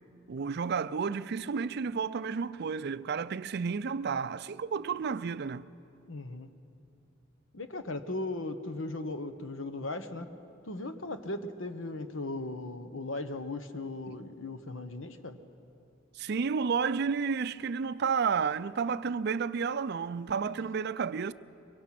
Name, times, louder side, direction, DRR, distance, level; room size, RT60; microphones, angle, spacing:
voice 1, 0.3-5.7 14.1-14.2 16.2-21.3, right 5 dB, 55° right, 0.4 m, -31 dB
voice 2, 6.1-6.5 7.5-10.3 10.6-15.4, left 2 dB, 75° left, 1.1 m, -37 dB
23.5 x 23.0 x 6.0 m
head